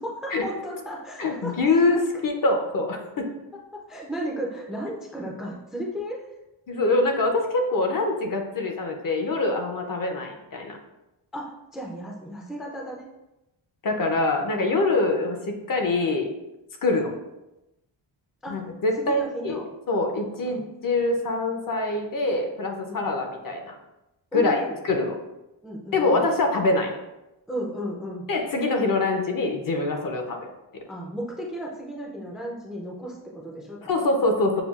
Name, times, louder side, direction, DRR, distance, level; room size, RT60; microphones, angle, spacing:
voice 1, 0.0-2.0 3.7-6.3 11.3-13.1 18.4-18.6 19.1-19.7 20.4-20.6 22.9-23.0 24.3-24.8 25.6-26.2 27.5-28.2 30.9-33.9, right 1 dB, ahead, -2 dB, 0.4 m, -34 dB
voice 2, 1.2-3.3 6.7-10.8 13.8-16.3 16.8-17.2 18.5-23.7 24.3-25.1 25.9-27.0 28.3-30.5 33.8-34.6, left 2 dB, 45° left, 3 dB, 0.6 m, -24 dB
6.7 x 2.3 x 2.3 m, 0.95 s
wide cardioid pair, 160°, 45 cm